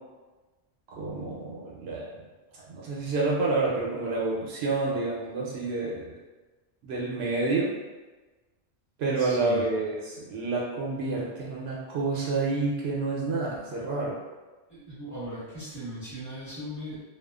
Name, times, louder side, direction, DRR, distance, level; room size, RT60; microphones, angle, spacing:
voice 1, 0.9-2.2 2.5-6.1 6.8-7.7 9.0-14.2, right 3 dB, 75° right, -4 dB, 0.8 m, -29 dB
voice 2, 9.2-9.6 14.7-17.0, equal, 15° left, -12 dB, 1.2 m, -38 dB
2.4 x 2.3 x 2.3 m, 1.2 s
omnidirectional pair, 1.1 m